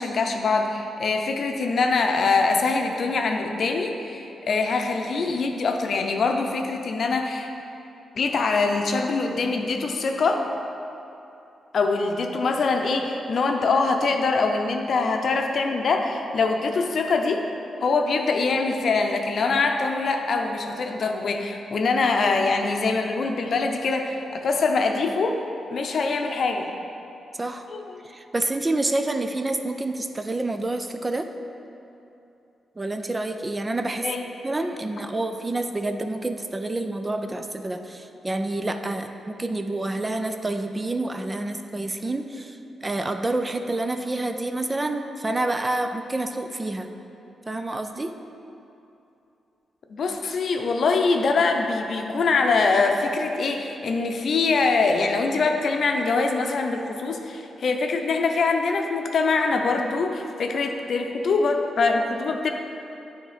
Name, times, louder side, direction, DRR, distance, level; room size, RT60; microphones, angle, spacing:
voice 1, 0.0-7.5 8.1-10.5 11.7-17.4 17.8-25.4 25.7-26.7 27.7-28.0 34.0-34.2 49.9-62.5, left 4 dB, 65° left, 3 dB, 0.6 m, -23 dB
voice 2, 27.4-27.7 28.0-31.3 32.8-34.1 34.4-46.9 47.5-48.1, right 2 dB, 25° right, 6 dB, 0.5 m, -28 dB
9.5 x 3.6 x 5.0 m, 2.8 s
cardioid pair, 60°, 0 cm